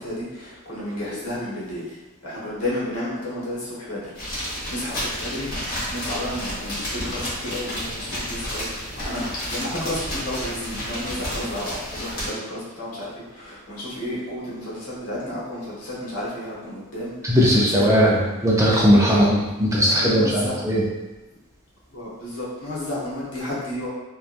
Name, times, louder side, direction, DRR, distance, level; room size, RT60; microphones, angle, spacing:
voice 1, 0.0-5.5 5.9-17.1 17.7-18.2 19.1-19.2 19.8-20.6 21.9-23.9, left 1 dB, 90° left, -7 dB, 1.0 m, -32 dB
sound 1, 4.1-12.3, equal, 40° left, 1.1 m, -31 dB
voice 2, 17.2-20.8, equal, 15° right, -5 dB, 0.3 m, -18 dB
2.8 x 2.2 x 2.4 m, 1.1 s
head